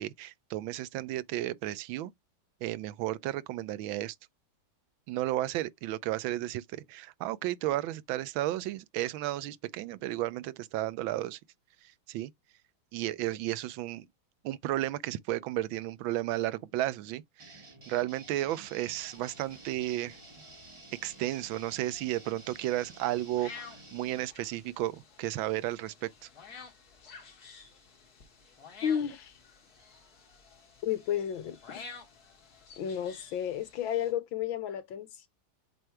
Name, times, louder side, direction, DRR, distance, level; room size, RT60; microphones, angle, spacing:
voice 1, 0.0-2.1 2.6-4.1 5.1-11.4 11.8-12.3 12.9-14.1 14.4-20.2 21.0-26.3, right 15 dB, 75° right, 1.3 m, -33 dB
sound 1, 17.4-24.3, right 2 dB, 20° right, 0.8 m, -52 dB
sound 2, 19.0-34.1, left 5 dB, 50° left, 2.2 m, -52 dB
voice 2, 28.8-29.3 30.8-31.9 32.8-35.3, left 9 dB, 70° left, 1.8 m, -32 dB
7.7 x 2.6 x 4.7 m
omnidirectional pair, 2.3 m